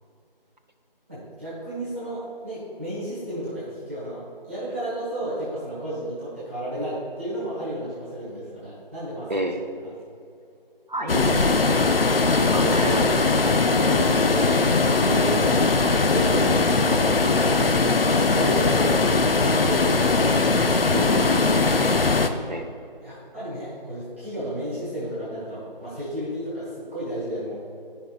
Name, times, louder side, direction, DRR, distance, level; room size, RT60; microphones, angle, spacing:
voice 1, 1.1-9.3 9.8-9.9 12.7-13.3 13.7-17.6 18.1-20.3 20.7-21.7 23.0-27.6, right 1 dB, 15° right, -14 dB, 1.5 m, -32 dB
voice 2, 9.3-9.6 10.9-11.7 12.1-13.3 20.9-21.3 22.5-22.7, right 1 dB, 50° right, 4 dB, 0.8 m, -29 dB
sound 1, 11.1-22.3, left 3 dB, 75° left, 0.6 m, -20 dB
14.0 x 5.5 x 2.4 m, 2.6 s
figure-of-eight pair, 170°, 29 cm